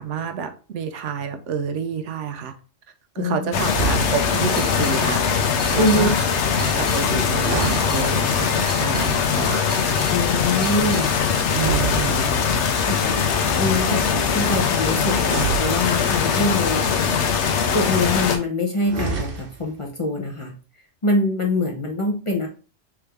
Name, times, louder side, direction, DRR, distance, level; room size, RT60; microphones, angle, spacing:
voice 1, 0.0-2.5 3.2-5.2 5.7-6.1 6.6-9.7 11.5-12.4, right 7 dB, 80° right, 7 dB, 1.0 m, -29 dB
voice 2, 3.2-3.6 5.7-6.1 10.1-11.1 12.8-13.2 13.6-17.2 17.7-20.6 21.0-22.5, left 2 dB, 30° left, 0 dB, 0.7 m, -24 dB
sound 1, 3.5-18.4, left 6 dB, 75° left, 0.9 m, -21 dB
sound 2, 3.6-4.6 7.3-8.6 11.5-12.7 15.2-16.4 18.8-19.7, right 5 dB, 55° right, 1.0 m, -29 dB
sound 3, 4.3-11.1, right 2 dB, 35° right, 0.7 m, -38 dB
3.6 x 3.3 x 3.3 m, 0.37 s
omnidirectional pair, 1.2 m